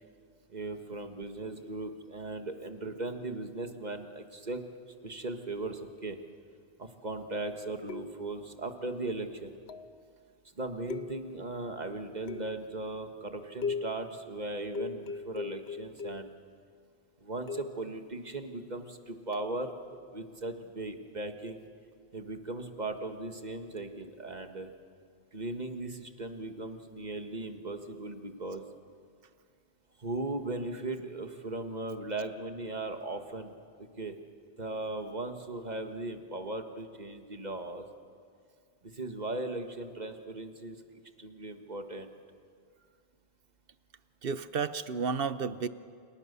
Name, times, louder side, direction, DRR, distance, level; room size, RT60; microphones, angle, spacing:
voice 1, 0.5-4.6 5.0-6.2 6.8-9.5 10.6-16.3 17.2-21.6 22.1-24.7 25.3-28.6 30.0-34.1 34.6-37.8 38.8-40.8 41.2-42.1, right 2 dB, 40° right, 6 dB, 1.9 m, -38 dB
sound 1, 7.9-8.4 9.7-10.0 10.9-11.5 12.3-12.8 13.6-14.1 14.7-16.4 17.5-17.9 19.3-19.6, left 5 dB, 75° left, 1.1 m, -39 dB
voice 2, 44.2-45.7, right 5 dB, 65° right, 14 dB, 1.1 m, -32 dB
30.0 x 28.5 x 6.9 m, 2.2 s
omnidirectional pair, 1.1 m